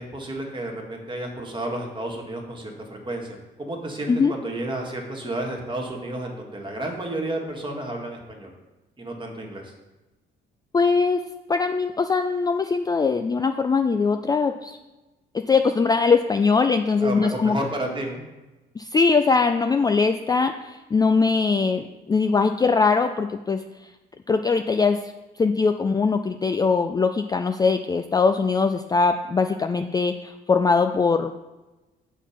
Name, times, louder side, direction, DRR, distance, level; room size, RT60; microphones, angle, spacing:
voice 1, 0.0-8.5 9.0-9.7 17.0-18.2, right 1 dB, 25° right, 1 dB, 1.7 m, -31 dB
voice 2, 10.7-11.2 11.5-14.8 15.3-17.6 18.8-23.9 24.3-25.0 25.4-31.3, left 4 dB, 20° left, 7 dB, 0.3 m, -21 dB
6.9 x 4.5 x 5.8 m, 1.1 s
cardioid pair, 90°, 20 cm